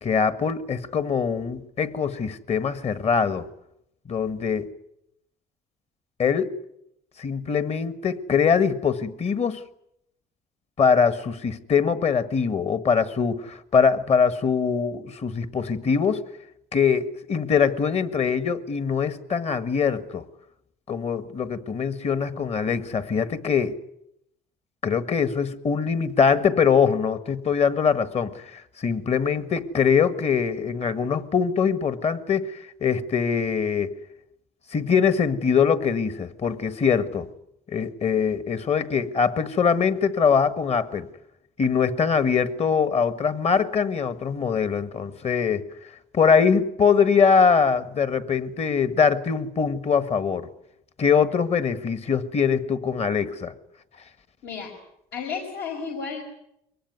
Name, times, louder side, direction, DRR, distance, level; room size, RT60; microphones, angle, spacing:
voice 1, 0.0-3.5 4.1-4.7 6.2-6.5 7.2-9.6 10.8-16.2 16.7-20.2 20.9-23.8 24.8-33.9 34.7-37.3 37.7-41.1 41.6-45.7 46.1-50.5 51.0-53.5, left 6 dB, 40° left, 12 dB, 1.6 m, -23 dB
voice 2, 54.4-54.7 55.1-56.3, left 5 dB, 75° left, 1 dB, 5.4 m, -32 dB
23.5 x 19.0 x 9.5 m, 0.79 s
cardioid pair, 110°, 17 cm